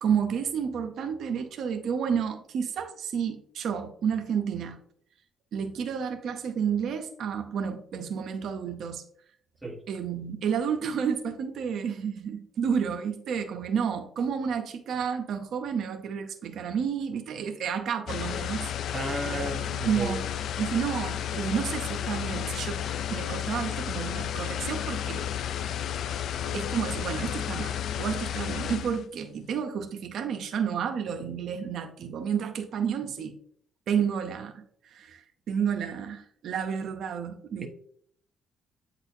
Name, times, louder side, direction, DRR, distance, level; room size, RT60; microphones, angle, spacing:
voice 1, 0.0-4.8 5.5-9.0 9.9-18.7 19.3-20.3 20.6-22.8 23.1-25.3 26.5-33.3 33.9-37.7, right 7 dB, 70° right, 0.6 m, -31 dB
sound 1, 18.1-29.1, left 10 dB, 70° left, 0.3 m, -32 dB
voice 2, 18.9-20.2 37.6-37.7, right 1 dB, 10° right, 1.2 m, -33 dB
8.7 x 4.1 x 2.7 m
cardioid pair, 90°, 0 cm